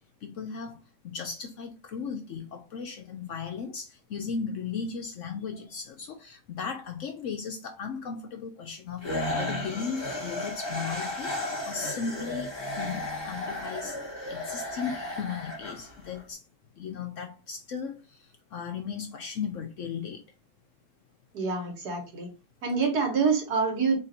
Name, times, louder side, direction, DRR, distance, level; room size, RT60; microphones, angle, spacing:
voice 1, 0.2-9.1 9.4-12.5 12.8-14.0 14.3-16.4 16.7-20.2, left 6 dB, 65° left, 0.8 m, -36 dB
sound 1, 9.0-16.2, left 1 dB, 20° left, 1.1 m, -34 dB
voice 2, 21.3-22.3 22.6-24.0, right 5 dB, 75° right, 1.9 m, -26 dB
3.6 x 2.6 x 4.2 m
omnidirectional pair, 1.7 m